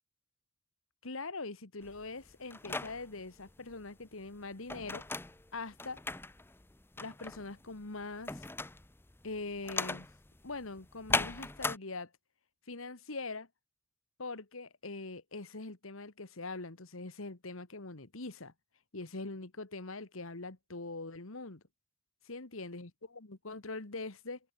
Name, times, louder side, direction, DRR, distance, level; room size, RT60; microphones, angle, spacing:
voice 1, 1.0-5.0 5.5-6.0 7.0-8.5 9.2-10.1 10.4-12.1 12.7-13.5 14.2-18.5 18.9-21.6 22.3-24.4, left 3 dB, 90° left, 1.9 m, -43 dB
sound 1, 1.8-11.8, left 3 dB, 10° left, 0.7 m, -38 dB
head